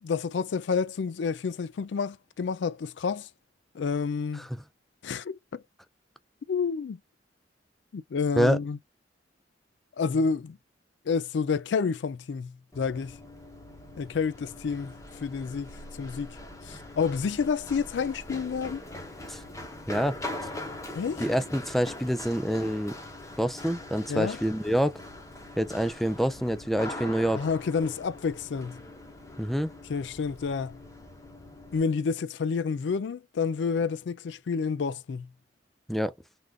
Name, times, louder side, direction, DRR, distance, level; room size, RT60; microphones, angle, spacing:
voice 1, 0.0-3.3 3.7-4.5 5.0-5.6 6.5-7.0 7.9-8.8 10.0-10.6 11.1-13.2 14.0-14.9 15.2-16.3 16.7-18.8 20.9-21.2 24.1-24.4 27.3-28.8 29.9-30.8 31.7-35.3, left 5 dB, 75° left, 0.4 m, -29 dB
Run, 12.7-31.8, left 1 dB, 15° left, 0.9 m, -42 dB
voice 2, 21.2-22.9 23.4-25.0 25.6-27.4 29.4-29.7 35.9-36.1, equal, ahead, 0.3 m, -26 dB
3.5 x 2.5 x 2.3 m
head